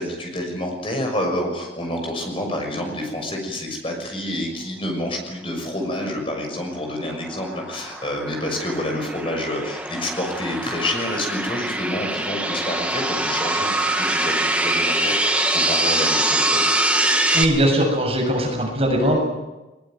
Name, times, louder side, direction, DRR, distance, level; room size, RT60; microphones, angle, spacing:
voice 1, 0.0-16.6, left 1 dB, 30° left, 2 dB, 6.4 m, -28 dB
sound 1, 6.6-17.4, right 1 dB, 5° right, 1.7 m, -23 dB
voice 2, 17.3-19.2, equal, 35° right, 1 dB, 7.5 m, -20 dB
21.0 x 20.5 x 9.3 m, 1.1 s
head